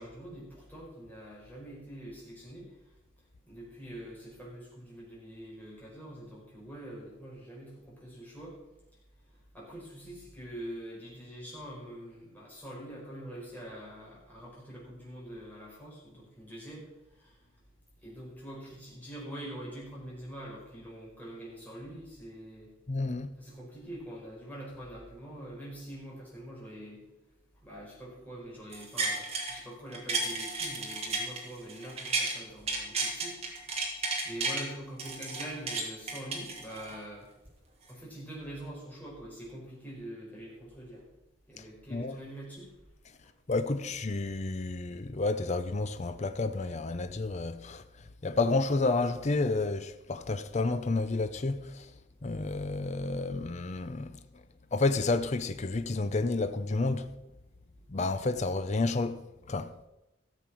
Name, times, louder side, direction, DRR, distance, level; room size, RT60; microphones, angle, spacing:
voice 1, 0.0-2.7 3.5-8.6 9.5-16.8 17.2-17.4 18.0-22.7 23.4-27.0 27.6-33.3 33.6-33.9 34.2-37.3 37.9-41.0 41.5-42.7 57.7-57.8, right 1 dB, 10° left, 5.1 m, -44 dB
voice 2, 22.9-23.3 41.9-42.2 43.5-47.8 48.2-51.9 52.2-54.2 54.7-57.1 57.9-59.2 59.5-59.7, left 3 dB, 35° left, 0.6 m, -30 dB
sound 1, 28.7-29.6 29.9-32.4 32.7-34.6 35.0-37.0 37.5-37.6, right 3 dB, 30° right, 2.5 m, -33 dB
14.0 x 7.4 x 6.2 m
head